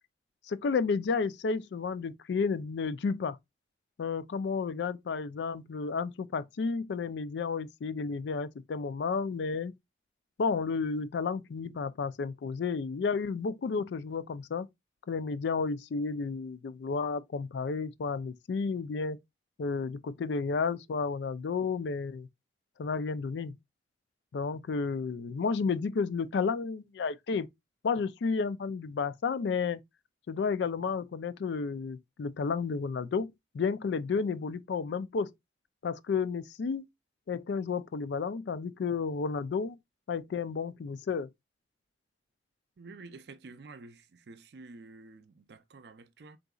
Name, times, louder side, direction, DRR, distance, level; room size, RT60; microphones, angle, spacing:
voice 1, 0.5-3.4 4.0-9.7 10.4-14.7 15.1-19.2 19.6-22.3 22.8-23.6 24.3-27.5 27.8-29.8 30.3-35.3 35.8-36.9 37.3-39.8 40.1-41.3, left 5 dB, 75° left, 0.4 m, -32 dB
voice 2, 42.8-46.4, right 3 dB, 65° right, 0.5 m, -50 dB
3.9 x 3.8 x 2.3 m
head